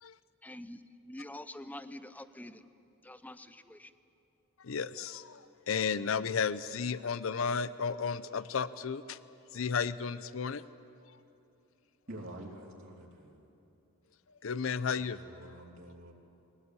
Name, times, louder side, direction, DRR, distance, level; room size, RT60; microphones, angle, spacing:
voice 1, 0.4-2.6 3.0-3.9, left 1 dB, 10° left, 12 dB, 0.6 m, -46 dB
voice 2, 4.6-9.2 9.5-10.6 14.4-15.2, left 6 dB, 70° left, 15 dB, 0.5 m, -33 dB
voice 3, 12.1-13.5 15.0-16.1, right 1 dB, 60° right, -3 dB, 2.9 m, -48 dB
22.5 x 17.0 x 9.8 m, 2.8 s
head